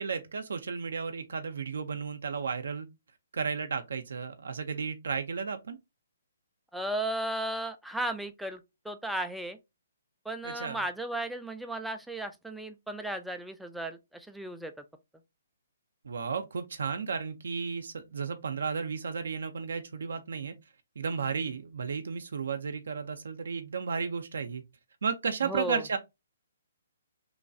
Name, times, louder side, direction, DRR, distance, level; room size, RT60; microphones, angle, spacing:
voice 1, 0.0-2.9 3.3-5.8 10.4-10.8 16.0-20.5 21.0-24.6 25.0-26.0, right 5 dB, 75° right, 0.5 m, -33 dB
voice 2, 6.7-9.6 10.3-14.7 25.4-25.8, right 1 dB, ahead, 0.3 m, -35 dB
3.1 x 2.2 x 2.6 m
hypercardioid pair, 145°, 0 cm